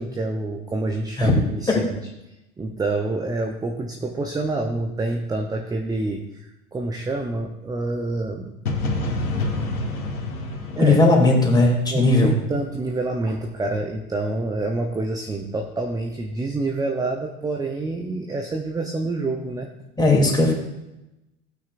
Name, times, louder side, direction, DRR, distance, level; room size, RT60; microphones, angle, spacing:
voice 1, 0.0-2.0 2.6-8.5 10.8-11.0 11.9-19.7, right 2 dB, 10° right, 3 dB, 0.8 m, -27 dB
sound 1, 8.7-12.5, left 2 dB, 85° left, 1.9 m, -28 dB
voice 2, 10.8-12.3 20.0-20.5, left 2 dB, 10° left, -1 dB, 2.9 m, -17 dB
16.0 x 9.2 x 2.5 m, 0.95 s
hypercardioid pair, 95°, 43 cm